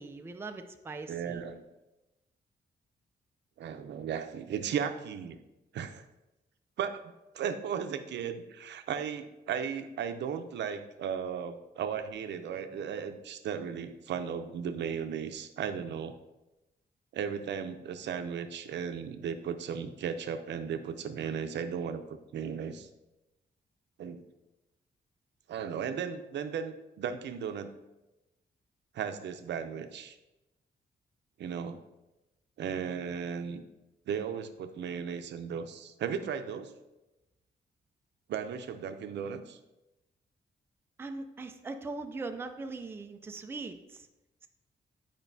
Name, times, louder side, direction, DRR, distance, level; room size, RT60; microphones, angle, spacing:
voice 1, 0.0-1.4 41.0-44.0, right 3 dB, 15° right, 6 dB, 0.3 m, -40 dB
voice 2, 1.1-1.6 3.6-5.4 5.7-6.0 6.8-6.9 7.3-16.1 17.1-22.9 24.0-24.2 25.5-27.7 28.9-30.2 31.4-31.8 32.6-33.6 34.1-36.7 38.3-39.6, right 7 dB, 85° right, 8 dB, 0.5 m, -36 dB
9.1 x 5.1 x 2.7 m, 0.98 s
wide cardioid pair, 170°, 18 cm